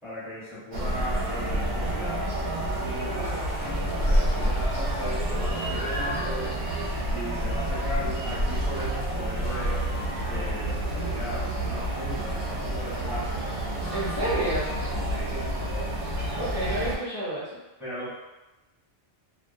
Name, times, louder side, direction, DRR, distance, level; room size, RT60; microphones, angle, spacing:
voice 1, 0.0-2.2 2.8-6.6 7.1-9.8 10.2-13.6 14.2-14.3 15.1-15.5 17.8-18.1, equal, 5° right, -10 dB, 0.8 m, -37 dB
sound 1, 0.7-17.0, right 1 dB, 50° right, 0.7 m, -28 dB
sound 2, 3.2-6.1 9.2-11.3 13.7-16.6, left 2 dB, 75° left, 1.0 m, -43 dB
voice 2, 13.9-14.7 16.3-17.6, right 1 dB, 40° left, -11 dB, 0.6 m, -29 dB
2.2 x 2.2 x 2.6 m, 1.0 s
omnidirectional pair, 1.1 m